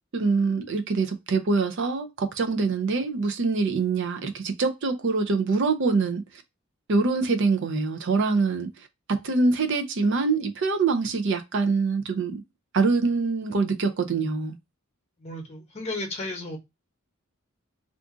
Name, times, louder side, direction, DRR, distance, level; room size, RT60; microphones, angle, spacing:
voice 1, 0.1-6.2 6.9-8.7 9.1-12.4 12.7-14.6, right 4 dB, 60° right, 0.5 m, -24 dB
voice 2, 15.2-16.6, left 2 dB, 30° left, 0.9 m, -34 dB
2.5 x 2.4 x 3.7 m
head